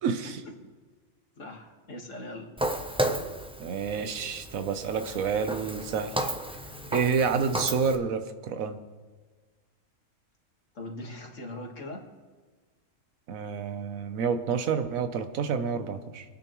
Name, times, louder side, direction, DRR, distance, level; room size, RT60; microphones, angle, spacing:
voice 1, 0.0-0.4 3.6-6.3 6.9-8.8 13.3-16.2, right 6 dB, 85° right, 9 dB, 1.3 m, -29 dB
voice 2, 1.4-2.5 10.7-12.0, left 1 dB, 65° left, 1 dB, 2.1 m, -40 dB
Walk footsteps, 2.6-8.0, right 1 dB, 10° right, 0.4 m, -33 dB
25.0 x 9.3 x 3.1 m, 1.4 s
omnidirectional pair, 1.4 m